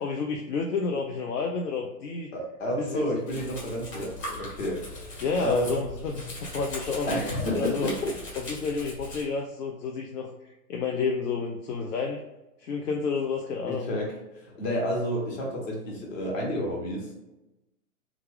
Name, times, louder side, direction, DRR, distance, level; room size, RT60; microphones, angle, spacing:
voice 1, 0.0-2.3 2.8-3.0 5.2-7.1 7.5-7.9 8.5-12.2 12.6-13.9, left 5 dB, 75° left, 3 dB, 0.6 m, -30 dB
voice 2, 2.3-5.8 7.1-8.1 13.7-17.1, equal, 55° left, -2 dB, 1.4 m, -30 dB
Domestic sounds home sounds, 3.3-9.2, left 2 dB, 25° left, 1.5 m, -40 dB
3.2 x 2.4 x 3.3 m, 1.0 s
hypercardioid pair, 120°, 47 cm